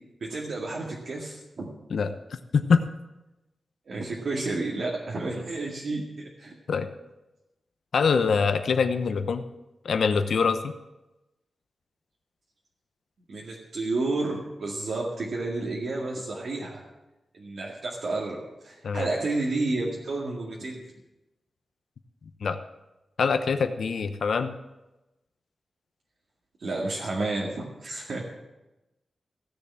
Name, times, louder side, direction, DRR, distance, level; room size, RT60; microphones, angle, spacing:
voice 1, 0.2-1.7 3.9-6.5 13.3-16.9 17.3-20.8 26.6-28.3, right 2 dB, 65° right, -3 dB, 2.1 m, -31 dB
voice 2, 7.9-9.4 9.8-10.7 18.8-19.1 22.4-22.6 23.2-24.6, left 5 dB, 75° left, 9 dB, 0.8 m, -24 dB
15.5 x 7.0 x 8.7 m, 1.0 s
wide cardioid pair, 140°, 0 cm